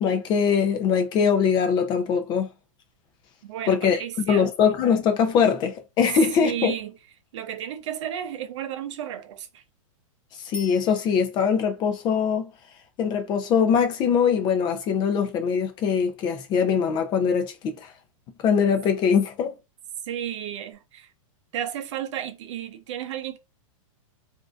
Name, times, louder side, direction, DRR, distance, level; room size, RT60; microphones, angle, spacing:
voice 1, 0.0-2.5 3.7-6.7 10.4-12.5 13.0-17.9 18.4-19.5, left 6 dB, 25° left, 0.5 m, -22 dB
voice 2, 3.4-4.5 6.4-6.9 7.3-9.6 20.0-21.1 21.5-23.4, right 10 dB, 60° right, 0.6 m, -33 dB
Bicycle bell, 10.5-11.7 20.7-20.8, left 4 dB, 40° left, 1.3 m, -43 dB
3.5 x 2.6 x 2.4 m
supercardioid pair, 150°, 17 cm